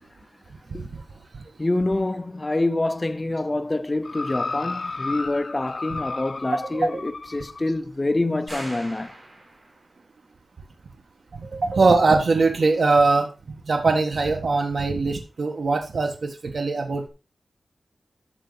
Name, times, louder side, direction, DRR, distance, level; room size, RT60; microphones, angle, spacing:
voice 1, 1.6-9.1, left 2 dB, 25° left, 0.5 m, -26 dB
sound 1, 4.0-7.7 8.5-8.6, left 3 dB, 45° left, 1.3 m, -33 dB
voice 2, 6.7-7.0 11.4-13.3 13.7-17.1, right 3 dB, 65° right, 1.4 m, -21 dB
sound 2, 8.5-10.0, right 1 dB, 30° right, 4.0 m, -41 dB
12.5 x 6.5 x 4.0 m
wide cardioid pair, 120°, 0 cm